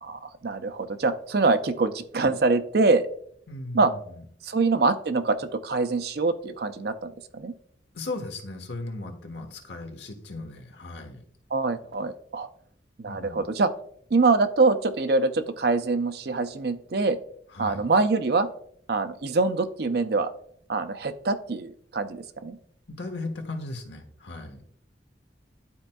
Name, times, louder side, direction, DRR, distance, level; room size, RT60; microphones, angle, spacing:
voice 1, 0.0-3.1 3.7-3.9 4.4-7.5 11.5-12.5 13.0-13.7 14.1-17.2 17.6-18.5 18.9-20.3 20.7-22.6, right 3 dB, 60° right, 10 dB, 0.5 m, -24 dB
voice 2, 3.5-4.2 7.9-11.2 13.1-13.4 17.5-17.9 22.9-24.6, left 2 dB, 75° left, 4 dB, 1.2 m, -37 dB
11.5 x 4.4 x 2.3 m, 0.65 s
head